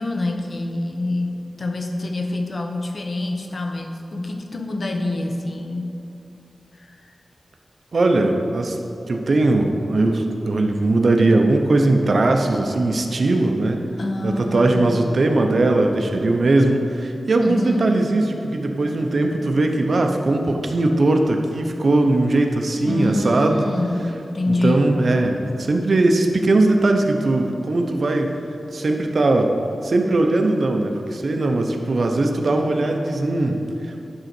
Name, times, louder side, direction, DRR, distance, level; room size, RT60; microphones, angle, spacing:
voice 1, 0.0-6.0 6.7-7.0 14.0-15.0 17.4-17.9 22.8-24.9, left 2 dB, 50° left, 4 dB, 0.8 m, -26 dB
voice 2, 7.9-8.8 9.1-13.8 14.2-23.7 24.5-28.3 28.7-29.5 29.8-34.0, right 2 dB, 60° right, 3 dB, 0.8 m, -19 dB
11.0 x 3.9 x 6.2 m, 2.8 s
wide cardioid pair, 90°, 0 cm